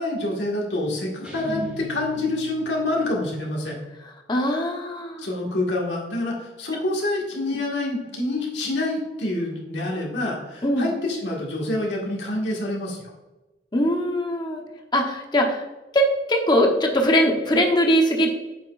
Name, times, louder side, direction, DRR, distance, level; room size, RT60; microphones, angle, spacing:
voice 1, 0.0-3.8 5.2-13.0, left 2 dB, 85° left, -2 dB, 1.8 m, -27 dB
sound 1, 1.2-3.8, right 1 dB, 10° right, 1.7 m, -42 dB
voice 2, 4.3-5.3 10.6-10.9 13.7-14.6 14.9-15.6 15.9-18.3, equal, 25° left, 2 dB, 0.9 m, -21 dB
8.2 x 5.9 x 2.5 m, 1.1 s
head